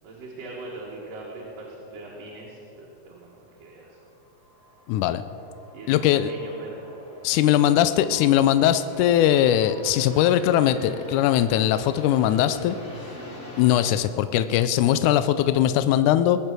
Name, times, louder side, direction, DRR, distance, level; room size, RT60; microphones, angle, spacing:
voice 1, 0.0-4.0 5.7-6.8, right 2 dB, 80° right, -5 dB, 3.5 m, -41 dB
sound 1, 3.2-13.9, left 1 dB, 20° left, 2.5 m, -44 dB
voice 2, 4.9-5.2 5.9-6.3 7.2-12.8 13.6-16.4, left 11 dB, 80° left, 11 dB, 1.9 m, -20 dB
21.0 x 8.7 x 6.1 m, 3.0 s
omnidirectional pair, 3.9 m